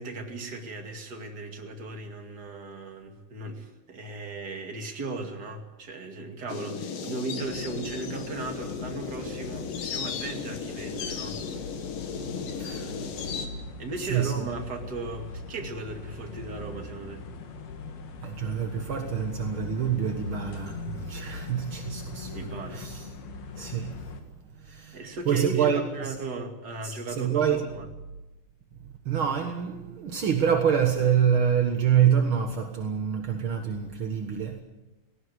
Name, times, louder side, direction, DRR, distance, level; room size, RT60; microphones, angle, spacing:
voice 1, 0.0-11.4 13.0-13.1 13.8-17.2 22.3-22.9 24.9-27.9, right 3 dB, 30° right, 2.3 m, -37 dB
sound 1, 6.5-13.5, left 6 dB, 65° left, 3.4 m, -35 dB
sound 2, 7.4-24.2, left 4 dB, 90° left, 4.0 m, -41 dB
voice 2, 12.6-12.9 13.9-14.5 18.2-23.1 23.6-24.0 24.6-26.2 26.8-27.7 29.0-34.6, right 8 dB, 55° right, 1.5 m, -26 dB
18.5 x 18.0 x 9.6 m
omnidirectional pair, 4.2 m